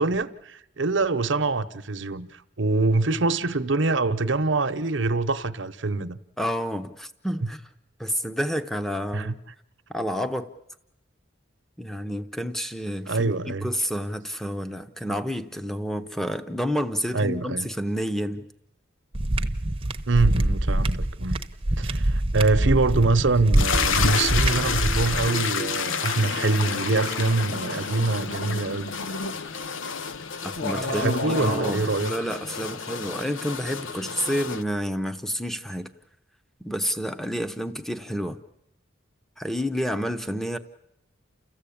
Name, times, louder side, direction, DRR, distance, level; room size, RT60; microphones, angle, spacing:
voice 1, 0.0-6.2 7.4-7.5 9.1-9.3 13.1-13.7 17.1-17.7 20.1-21.4 21.8-28.9 30.9-32.1, right 3 dB, 65° right, 1.0 m, -24 dB
voice 2, 6.4-7.6 8.0-9.3 9.9-10.5 11.8-18.5 30.4-35.9 36.6-38.4 39.4-40.6, equal, ahead, 0.9 m, -29 dB
sound 1, 19.1-25.3, right 1 dB, 25° right, 0.9 m, -24 dB
sound 2, 23.6-34.6, left 6 dB, 75° left, 0.8 m, -30 dB
sound 3, 26.2-29.4 30.1-30.2 30.6-31.7, left 1 dB, 55° left, 2.2 m, -33 dB
30.0 x 15.0 x 8.6 m
head